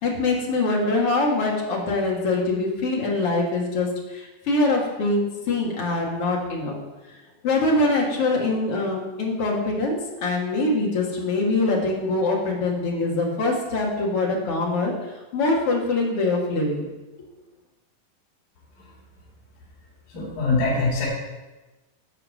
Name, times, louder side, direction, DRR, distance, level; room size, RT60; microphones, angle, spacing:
voice 1, 0.0-6.8 7.4-16.9, left 2 dB, 50° left, -2 dB, 2.5 m, -24 dB
voice 2, 20.1-21.1, left 3 dB, 90° left, -6 dB, 4.5 m, -23 dB
10.5 x 4.7 x 7.7 m, 1.1 s
omnidirectional pair, 3.8 m